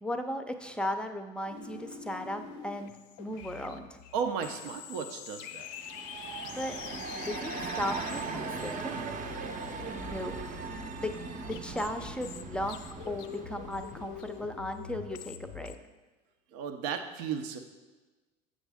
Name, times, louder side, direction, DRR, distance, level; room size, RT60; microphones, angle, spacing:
voice 1, 0.0-4.0 6.5-6.8 7.1-9.0 9.9-10.4 11.0-11.1 11.5-12.8 13.1-15.7, left 1 dB, 5° left, 6 dB, 0.5 m, -36 dB
sound 1, 1.5-15.7, left 10 dB, 65° left, 0.5 m, -45 dB
voice 2, 4.1-5.7 16.5-17.6, right 7 dB, 75° right, 6 dB, 0.6 m, -34 dB
sound 2, 5.7-14.4, right 4 dB, 40° right, 0.7 m, -39 dB
7.1 x 6.2 x 3.5 m, 1.2 s
hypercardioid pair, 90°, 21 cm